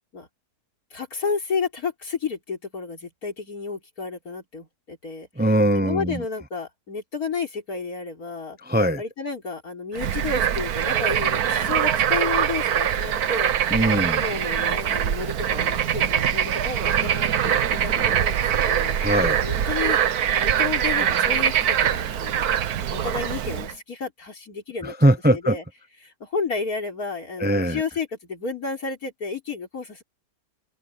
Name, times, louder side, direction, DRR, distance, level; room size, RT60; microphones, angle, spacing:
voice 1, 0.9-5.3 5.7-8.6 9.0-13.5 13.9-19.0 19.4-20.0 20.3-22.5 22.9-24.9 25.3-25.6 26.0-30.0, left 4 dB, 85° left, 4.4 m, -31 dB
voice 2, 5.4-6.2 8.6-9.0 13.7-14.2 19.0-19.4 24.8-25.6 27.4-27.8, right 1 dB, 10° right, 0.5 m, -21 dB
Bird / Frog, 10.0-23.7, right 9 dB, 90° right, 1.5 m, -23 dB
omnidirectional pair, 1.5 m